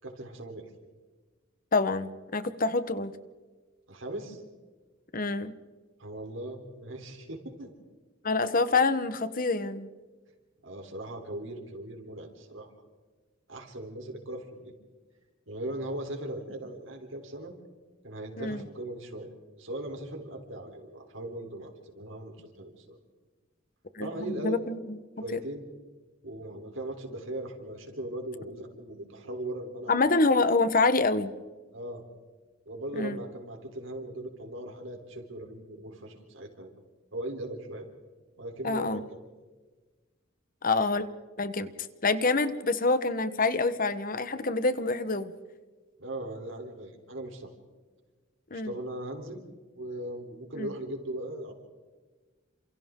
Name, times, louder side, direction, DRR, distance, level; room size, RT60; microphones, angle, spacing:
voice 1, 0.0-0.7 3.9-4.4 6.0-7.7 10.6-12.7 13.5-14.7 15.5-17.5 18.0-23.0 24.0-24.6 25.2-25.6 26.2-30.0 31.7-32.0 32.7-36.7 37.1-37.9 38.4-39.0 46.0-47.5 48.5-49.4 49.7-51.5, right 1 dB, 70° right, 3 dB, 3.8 m, -39 dB
voice 2, 1.7-3.1 5.1-5.5 8.2-9.9 18.4-18.6 23.9-24.8 25.3-25.4 29.9-31.3 32.9-33.2 38.6-39.0 40.6-41.1 41.4-41.7 42.0-45.3 48.5-48.7 50.5-50.7, left 3 dB, 45° left, 12 dB, 1.2 m, -26 dB
29.0 x 27.5 x 3.8 m, 1.3 s
head